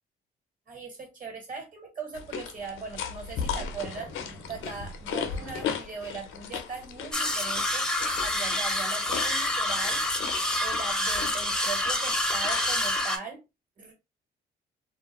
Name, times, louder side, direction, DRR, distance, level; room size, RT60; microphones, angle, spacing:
voice 1, 0.7-10.0 10.6-13.4 13.8-13.9, right 5 dB, 45° right, 1.3 m, -40 dB
sound 1, 2.1-13.0, left 7 dB, 90° left, 0.5 m, -37 dB
sound 2, 3.6-5.8 6.2-6.3 6.5-6.6 7.3-7.4 8.1-8.2 9.0-9.1, equal, 90° right, 1.3 m, -46 dB
sound 3, 7.1-13.2, left 1 dB, 5° left, 0.5 m, -27 dB
2.3 x 2.1 x 2.9 m
cardioid pair, 90°, 20 cm